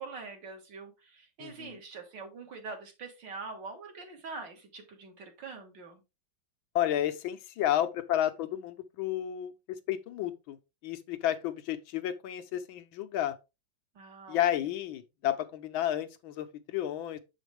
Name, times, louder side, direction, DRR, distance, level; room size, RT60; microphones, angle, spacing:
voice 1, 0.0-6.0 14.0-14.7, right 4 dB, 65° right, 2.2 m, -44 dB
voice 2, 1.4-1.8 6.7-10.6 10.8-13.3 14.3-17.2, left 12 dB, 90° left, 1.6 m, -31 dB
7.2 x 5.0 x 3.3 m
omnidirectional pair, 2.2 m